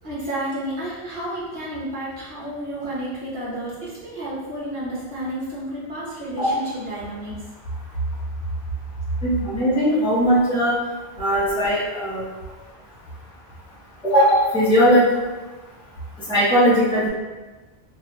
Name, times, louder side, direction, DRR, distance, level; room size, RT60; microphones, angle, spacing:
voice 1, 0.0-7.4, right 1 dB, 65° right, -8 dB, 1.4 m, -31 dB
voice 2, 9.2-10.8 11.2-12.2 14.0-15.0 16.3-17.1, equal, 5° right, -9 dB, 0.7 m, -18 dB
2.9 x 2.8 x 2.9 m, 1.2 s
omnidirectional pair, 1.1 m